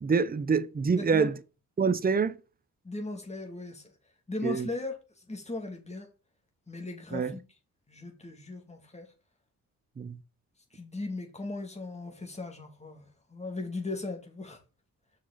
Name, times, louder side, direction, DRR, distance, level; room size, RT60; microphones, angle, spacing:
voice 1, 0.0-1.4 1.8-2.4 4.4-4.7 7.1-7.3 10.0-10.2, right 5 dB, 25° right, 0.7 m, -26 dB
voice 2, 0.9-1.3 2.8-3.9 4.3-5.0 5.3-6.1 6.7-7.4 7.9-9.1 10.7-14.6, left 2 dB, 20° left, 2.5 m, -38 dB
6.4 x 5.8 x 4.1 m
cardioid pair, 65°, 34 cm